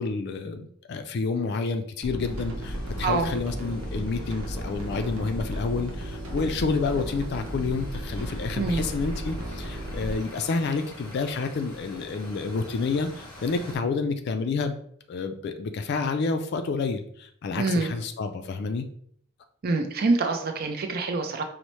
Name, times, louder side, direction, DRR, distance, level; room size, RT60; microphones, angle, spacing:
voice 1, 0.0-14.8 15.1-18.9, left 4 dB, 50° left, 7 dB, 0.3 m, -29 dB
sound 1, 2.0-10.1, equal, 90° right, 0.7 m, -34 dB
sound 2, 2.2-13.8, left 1 dB, 25° left, 1.1 m, -45 dB
voice 2, 17.6-17.9 19.6-21.4, right 3 dB, 45° right, 5 dB, 0.5 m, -25 dB
5.3 x 2.0 x 3.0 m, 0.63 s
head